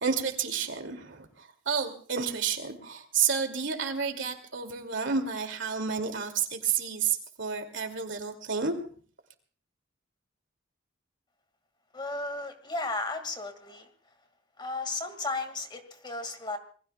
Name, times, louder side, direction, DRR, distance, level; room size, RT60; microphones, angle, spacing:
voice 1, 0.0-8.8, right 6 dB, 70° right, 6 dB, 2.5 m, -30 dB
voice 2, 11.9-13.9 14.6-16.6, left 2 dB, 25° left, 7 dB, 2.0 m, -34 dB
27.0 x 21.5 x 2.3 m, 0.43 s
head